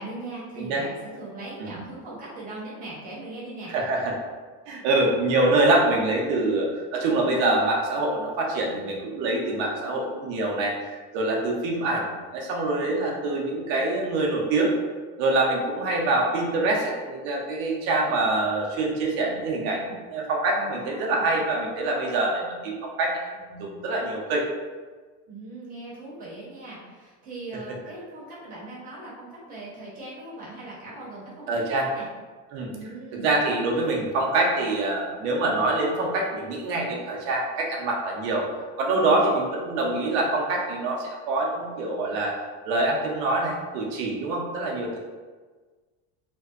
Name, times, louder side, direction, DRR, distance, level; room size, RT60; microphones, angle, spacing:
voice 1, 0.0-3.7 6.2-6.6 20.6-21.3 25.3-32.1 32.7-33.3 38.9-39.3, right 2 dB, 25° right, -7 dB, 0.7 m, -40 dB
voice 2, 3.7-4.1 4.7-6.7 6.9-14.8 15.2-24.4 31.5-31.9 32.5-32.7 33.1-38.5 38.8-42.4 42.6-45.0, right 2 dB, 65° right, -1 dB, 0.6 m, -25 dB
2.6 x 2.1 x 2.3 m, 1.4 s
cardioid pair, 175°, 36 cm